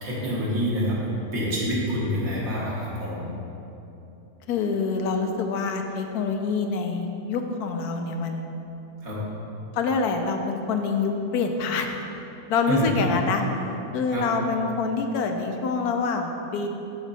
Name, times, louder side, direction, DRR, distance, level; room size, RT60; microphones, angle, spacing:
voice 1, 0.0-3.3 9.0-9.2 12.7-12.8 14.1-14.3, equal, 65° right, -6 dB, 2.0 m, -27 dB
voice 2, 4.5-8.5 9.7-12.0 12.5-13.4 13.9-16.7, left 4 dB, 85° left, 4 dB, 1.2 m, -26 dB
7.1 x 5.9 x 4.1 m, 2.9 s
omnidirectional pair, 1.6 m